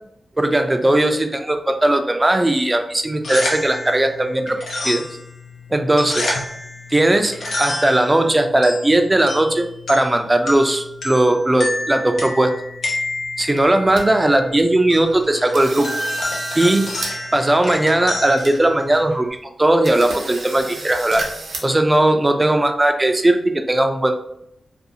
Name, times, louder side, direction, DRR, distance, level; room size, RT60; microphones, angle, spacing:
voice 1, 0.4-4.6 4.8-5.1 5.7-6.4 6.9-12.5 13.4-15.9 16.5-16.9 17.3-21.2 21.6-24.2, right 1 dB, 25° right, 6 dB, 0.3 m, -18 dB
sound 1, 3.0-19.3, left 2 dB, 80° left, 0.6 m, -29 dB
sound 2, 13.2-13.3 13.6-14.0 14.5-14.6 15.0-15.2 15.5-17.1 17.4-17.5 18.0-18.1 18.4-19.0 19.3-19.4 19.8-21.6, right 2 dB, 80° right, 0.6 m, -32 dB
2.5 x 2.3 x 2.7 m, 0.76 s
cardioid pair, 55°, 0 cm